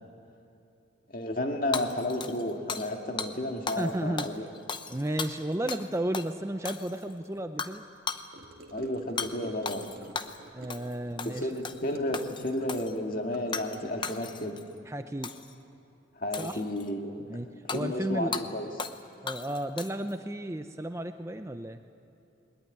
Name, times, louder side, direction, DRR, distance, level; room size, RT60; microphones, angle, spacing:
voice 1, 1.1-4.5 8.7-9.9 11.3-14.6 16.2-17.3 17.7-18.7, left 1 dB, 45° left, 3 dB, 2.1 m, -32 dB
Hammer / Shatter, 1.7-2.9 3.2-3.3 3.7-3.9 4.2-5.9 6.1-6.3 6.7-7.1 7.6-7.8 8.1-8.3 9.2-9.3 9.7-10.4 10.7-10.9 11.2-11.8 12.1-12.9 13.5-13.8 14.0-14.6 15.2-15.5 16.3-16.9 17.7-17.8 18.3-18.5 18.8-19.0 19.3-20.1, left 5 dB, 25° left, 0.8 m, -36 dB
voice 2, 3.8-4.3 4.9-7.9 10.5-11.5 14.9-15.3 16.4-16.6 17.3-17.5 17.7-18.3 19.2-21.8, right 1 dB, 15° right, 8 dB, 0.6 m, -33 dB
Gurgling / Car passing by / Sink (filling or washing), 8.3-14.0, right 1 dB, 50° right, 2.1 m, -49 dB
21.5 x 20.5 x 9.6 m, 2.7 s
head